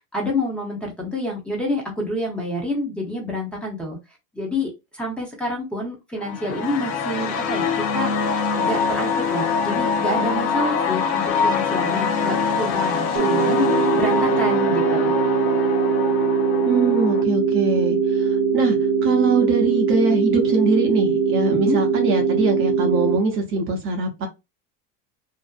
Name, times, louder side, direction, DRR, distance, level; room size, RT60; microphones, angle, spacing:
voice 1, 0.1-4.0 4.3-8.1 8.6-15.1 21.5-21.8, left 1 dB, 5° left, 0.8 m, -28 dB
sound 1, 6.2-17.2, left 5 dB, 55° left, 0.6 m, -24 dB
sound 2, 13.2-23.2, right 5 dB, 60° right, 0.9 m, -21 dB
voice 2, 16.6-18.8 19.0-24.3, right 3 dB, 40° right, 0.7 m, -22 dB
2.6 x 2.0 x 2.3 m
supercardioid pair, 115°, 33 cm